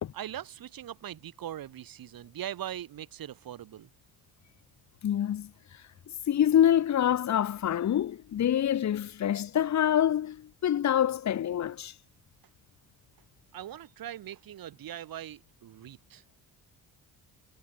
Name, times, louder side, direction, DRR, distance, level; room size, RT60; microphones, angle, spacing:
voice 1, 0.1-3.9 13.5-16.2, right 11 dB, 65° right, 6.2 m, -41 dB
voice 2, 5.0-5.5 6.3-11.9, left 10 dB, 45° left, 1.4 m, -26 dB
cardioid pair, 135°, 38 cm